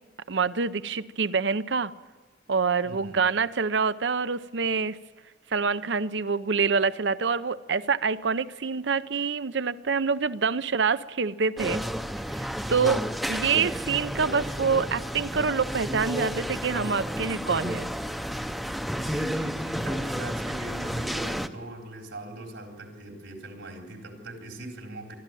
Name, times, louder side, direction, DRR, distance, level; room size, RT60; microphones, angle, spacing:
voice 1, 0.3-1.9 2.5-5.0 5.5-11.8 12.3-17.9, right 5 dB, 70° right, 0.7 m, -26 dB
voice 2, 2.8-3.2 12.7-13.1 16.3-16.4 19.0-25.1, right 1 dB, 90° right, 4.2 m, -40 dB
sound 1, 11.6-21.5, equal, ahead, 0.7 m, -31 dB
24.0 x 13.0 x 9.2 m
head